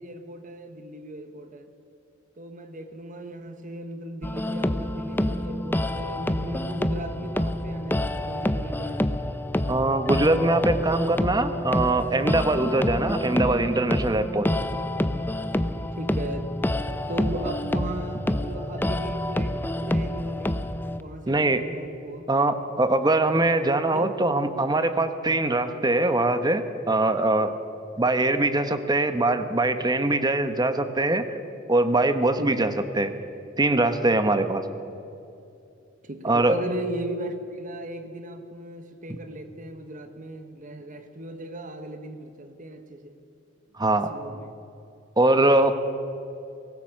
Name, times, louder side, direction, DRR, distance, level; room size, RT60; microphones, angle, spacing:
voice 1, 0.0-1.7 2.4-9.4 15.9-16.6 17.1-20.7 21.0-22.3 23.9-24.1 32.4-32.8 36.0-43.2 43.9-44.5, right 1 dB, 45° right, 1.3 m, -37 dB
sound 1, 4.2-21.0, left 1 dB, 10° left, 0.7 m, -27 dB
voice 2, 9.7-14.5 21.3-21.6 22.3-27.5 28.0-31.3 31.7-33.1 33.6-34.6 36.2-36.6 39.1-39.2 43.8-44.1 45.2-45.7, right 2 dB, 20° right, 1.1 m, -22 dB
23.5 x 18.0 x 6.5 m
head